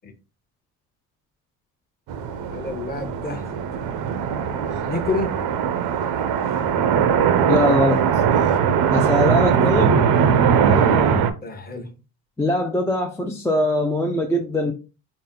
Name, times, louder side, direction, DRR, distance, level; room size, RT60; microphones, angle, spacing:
sound 1, 2.1-11.3, right 7 dB, 75° right, 0.7 m, -20 dB
voice 1, 2.5-3.5 4.9-5.3 11.4-11.9, left 3 dB, 25° left, 0.9 m, -28 dB
voice 2, 7.5-8.0 8.9-10.0 12.4-14.7, left 1 dB, 5° left, 0.4 m, -21 dB
4.0 x 2.1 x 3.7 m
cardioid pair, 110°, 38 cm